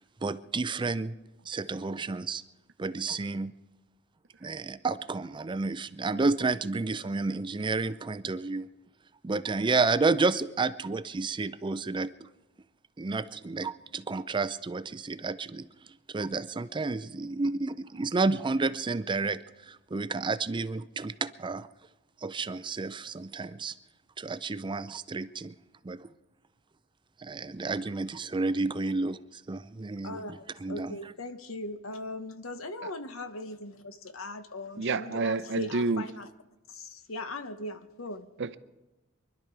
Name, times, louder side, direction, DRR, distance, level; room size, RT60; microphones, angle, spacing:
voice 1, 0.2-1.1 1.5-2.4 2.8-3.5 4.4-8.7 9.2-12.3 13.0-15.7 16.1-19.4 19.7-21.7 22.2-23.7 24.2-25.5 25.8-26.1 27.2-31.0, right 3 dB, 25° right, 0.4 m, -31 dB
voice 2, 30.0-36.3 36.7-38.3, left 2 dB, 70° left, 1.1 m, -39 dB
voice 3, 34.8-36.1 38.4-38.6, right 3 dB, 60° right, 0.7 m, -29 dB
24.0 x 11.5 x 4.6 m
head